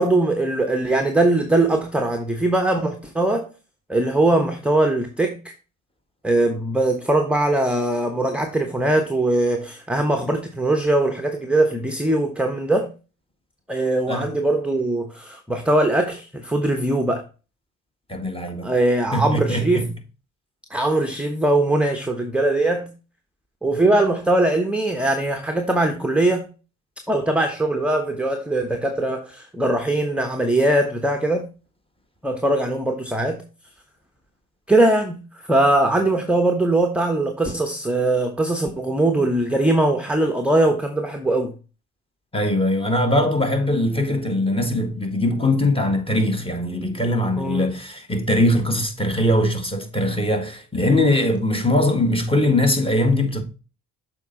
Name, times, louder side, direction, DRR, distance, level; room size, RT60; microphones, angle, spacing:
voice 1, 0.0-3.5 3.9-5.5 6.2-12.9 13.7-17.2 18.6-19.9 20.7-22.9 23.6-26.5 27.1-31.5 32.2-33.4 34.7-41.5 47.4-47.7, right 2 dB, 5° right, 1.1 m, -21 dB
voice 2, 18.1-18.7 19.1-19.9 42.3-53.4, left 1 dB, 10° left, 1.7 m, -21 dB
7.0 x 4.5 x 4.0 m
hypercardioid pair, 50°, 43 cm